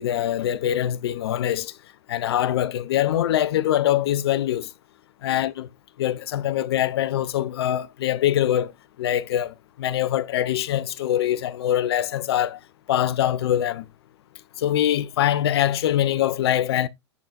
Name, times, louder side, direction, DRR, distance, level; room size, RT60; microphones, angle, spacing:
voice 1, 0.0-1.7 2.1-4.7 5.2-5.7 6.0-8.7 9.0-12.6 12.9-13.8 14.6-16.9, left 11 dB, 65° left, 0.6 m, -23 dB
10.5 x 3.9 x 2.5 m
hypercardioid pair, 105°, 14 cm